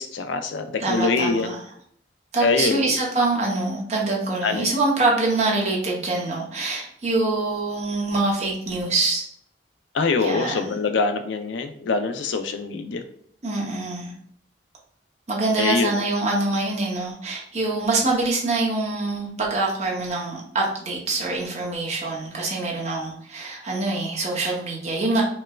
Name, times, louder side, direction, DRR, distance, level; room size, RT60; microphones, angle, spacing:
voice 1, 0.0-1.5 2.4-2.9 4.4-4.7 9.9-13.0 15.6-15.9, left 4 dB, 90° left, 7 dB, 0.4 m, -24 dB
voice 2, 0.8-1.6 2.3-9.2 10.2-10.8 13.4-14.1 15.3-25.2, right 2 dB, 40° right, -3 dB, 0.8 m, -25 dB
4.4 x 2.1 x 2.3 m, 0.64 s
head